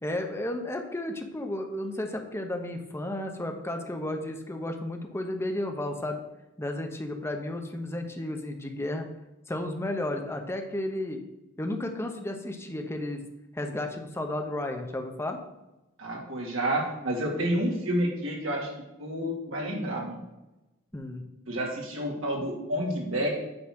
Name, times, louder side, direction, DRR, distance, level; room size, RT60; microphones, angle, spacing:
voice 1, 0.0-6.2 6.6-9.1 9.5-11.2 11.6-13.2 13.5-15.4 20.9-21.2, left 1 dB, 10° left, 4 dB, 0.8 m, -33 dB
voice 2, 16.0-18.7 19.0-20.2 21.5-23.4, right 1 dB, 70° right, -1 dB, 2.3 m, -29 dB
8.7 x 4.0 x 6.2 m, 0.97 s
head